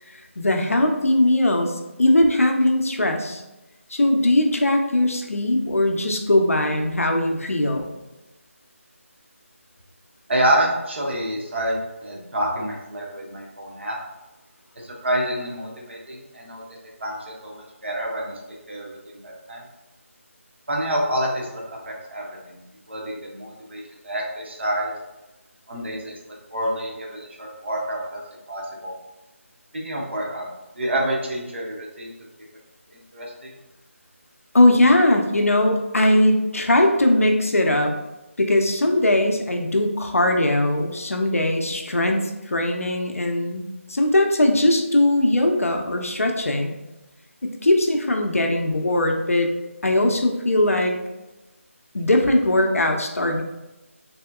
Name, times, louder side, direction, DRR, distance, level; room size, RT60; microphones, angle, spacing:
voice 1, 0.4-3.4 3.9-7.9 34.5-37.9 38.4-46.7 47.4-49.5 49.8-50.9 51.9-53.4, left 1 dB, 80° left, 3 dB, 0.6 m, -20 dB
voice 2, 10.3-14.0 14.8-16.6 17.0-17.2 17.4-18.3 18.7-19.6 20.7-22.6 22.9-24.9 25.7-26.1 26.5-28.2 28.5-28.9 29.7-30.5 30.8-32.1 33.1-33.5, right 1 dB, 55° right, -2 dB, 0.9 m, -27 dB
3.5 x 2.7 x 2.3 m, 1.0 s
figure-of-eight pair, 165°, 8 cm